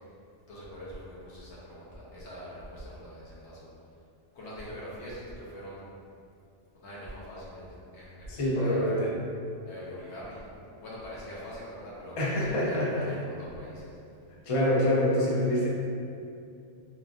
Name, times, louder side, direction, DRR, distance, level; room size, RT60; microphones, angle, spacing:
voice 1, 0.5-3.7 4.3-5.9 6.7-9.0 9.6-10.4 10.8-13.9, equal, 75° left, -7 dB, 1.1 m, -43 dB
voice 2, 8.3-9.1 12.2-13.1 14.4-15.7, left 1 dB, 45° left, -5 dB, 0.4 m, -26 dB
3.0 x 2.5 x 2.4 m, 2.5 s
omnidirectional pair, 1.2 m